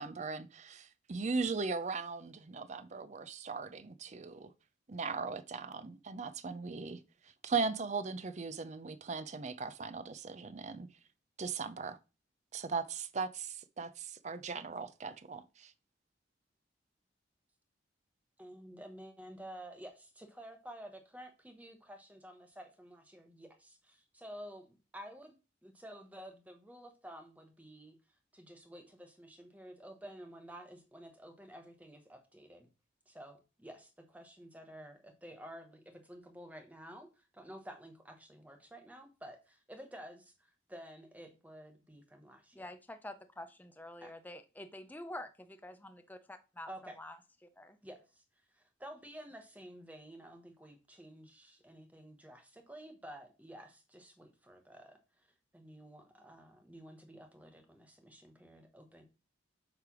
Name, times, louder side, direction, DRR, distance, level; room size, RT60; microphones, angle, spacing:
voice 1, 0.0-4.5 4.9-10.9 11.4-12.0 12.5-15.7, right 4 dB, 40° right, 0.5 m, -38 dB
voice 2, 18.4-25.3 25.6-28.0 28.3-32.7 33.1-42.7 44.0-44.1 46.7-47.0 47.8-48.2 48.5-55.3 55.5-59.0, equal, 10° right, 1.1 m, -51 dB
voice 3, 42.5-46.7 47.0-47.2 47.4-47.8, left 1 dB, 10° left, 0.5 m, -47 dB
8.3 x 3.3 x 6.0 m
head